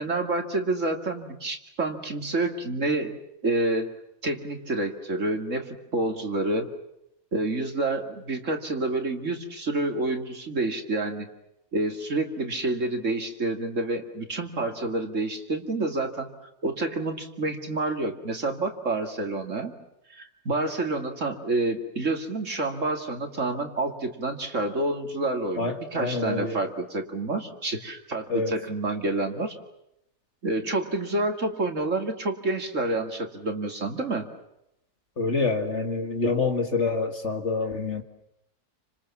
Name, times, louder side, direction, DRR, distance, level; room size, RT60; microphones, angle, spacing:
voice 1, 0.0-3.2 3.4-3.9 4.2-6.7 7.3-11.3 11.7-16.3 16.6-19.7 20.1-29.5 30.4-34.3, right 2 dB, 50° right, 4 dB, 2.9 m, -28 dB
voice 2, 25.6-26.6 28.3-28.6 35.2-38.0, left 3 dB, 45° left, 6 dB, 2.3 m, -27 dB
29.5 x 26.5 x 7.2 m, 0.82 s
omnidirectional pair, 1.7 m